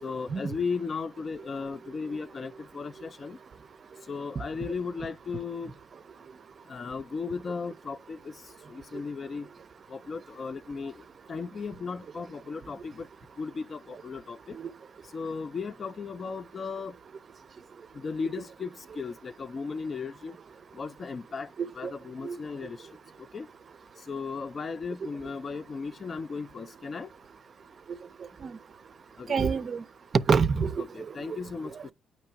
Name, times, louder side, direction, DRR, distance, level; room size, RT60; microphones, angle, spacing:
voice 1, 0.0-3.4 4.1-5.7 6.7-8.3 8.7-9.5 9.9-11.0 11.3-13.1 13.4-14.6 15.1-17.0 17.9-20.4 20.7-22.9 23.3-23.5 24.1-27.1 29.2-29.4 30.9-31.9, left 5 dB, 40° left, 0.4 m, -36 dB
voice 2, 29.3-29.8 30.1-30.8 31.7-31.8, right 5 dB, 45° right, 0.4 m, -26 dB
8.9 x 3.0 x 4.5 m
cardioid pair, 90°, 0 cm